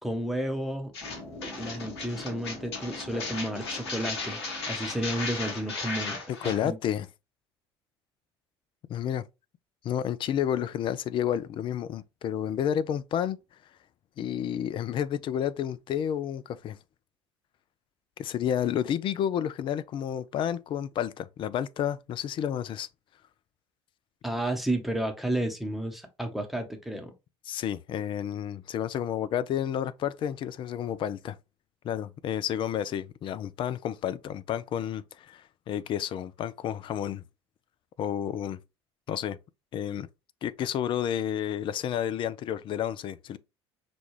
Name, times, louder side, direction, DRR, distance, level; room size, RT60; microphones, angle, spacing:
voice 1, 0.0-0.9 1.6-4.4 4.7-6.8 24.2-27.1, right 1 dB, ahead, 0.9 m, -32 dB
sound 1, 0.9-6.6, left 3 dB, 70° left, 1.1 m, -36 dB
sound 2, 1.0-6.0, left 2 dB, 20° left, 1.6 m, -46 dB
voice 2, 6.4-7.1 8.9-9.2 9.8-13.4 14.2-16.8 18.2-22.9 27.5-31.4 31.8-37.2 38.0-38.6 39.1-39.4 39.7-40.1 40.4-43.4, left 9 dB, 35° left, 0.4 m, -30 dB
5.9 x 2.3 x 3.1 m
figure-of-eight pair, 60°, 14 cm